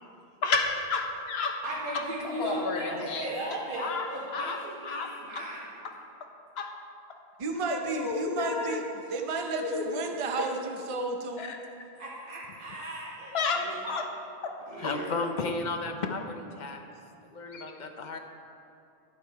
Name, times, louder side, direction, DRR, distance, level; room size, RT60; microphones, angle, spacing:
voice 1, 0.4-1.6 1.9-3.3 3.8-4.1 4.3-4.6 4.8-5.4 5.8-5.9 6.6-6.7 7.7-8.8 9.5-10.0 10.4-10.5 11.4-11.6 13.3-14.1 14.4-14.5 17.5-17.6, left 4 dB, 75° left, 3 dB, 1.1 m, -31 dB
voice 2, 1.6-5.7 12.0-14.0 14.7-15.2, right 1 dB, 55° right, -6 dB, 1.5 m, -37 dB
voice 3, 7.4-8.8 9.1-11.6, right 3 dB, 35° right, 3 dB, 0.6 m, -32 dB
voice 4, 14.8-16.8 17.3-18.2, left 3 dB, 50° left, 5 dB, 0.8 m, -33 dB
10.5 x 7.4 x 4.6 m, 2.6 s
omnidirectional pair, 1.1 m